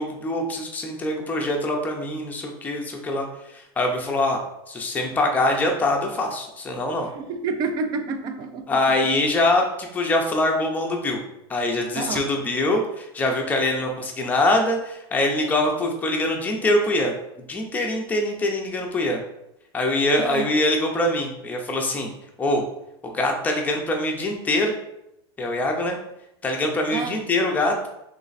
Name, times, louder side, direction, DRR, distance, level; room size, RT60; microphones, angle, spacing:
voice 1, 0.0-3.3 3.5-4.4 4.7-7.1 8.7-11.2 11.5-17.1 17.5-19.2 19.7-22.1 22.4-22.6 23.0-24.7 25.4-26.0 26.4-27.7, left 1 dB, 10° left, 1 dB, 0.6 m, -23 dB
voice 2, 7.0-8.8 11.9-12.3 20.2-20.5 26.9-27.2, right 4 dB, 30° right, 7 dB, 0.5 m, -29 dB
3.3 x 3.0 x 4.0 m, 0.85 s
supercardioid pair, 140°, 13 cm